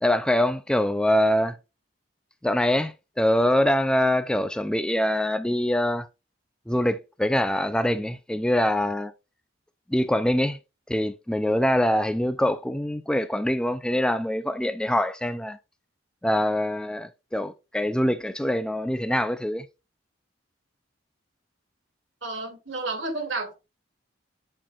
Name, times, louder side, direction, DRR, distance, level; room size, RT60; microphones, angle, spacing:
voice 1, 0.0-1.6 2.4-6.1 6.7-9.1 9.9-10.6 10.9-15.6 16.2-19.7, left 1 dB, 5° left, 0.4 m, -24 dB
voice 2, 22.2-23.5, right 3 dB, 80° right, 2.5 m, -31 dB
10.0 x 4.5 x 2.4 m
head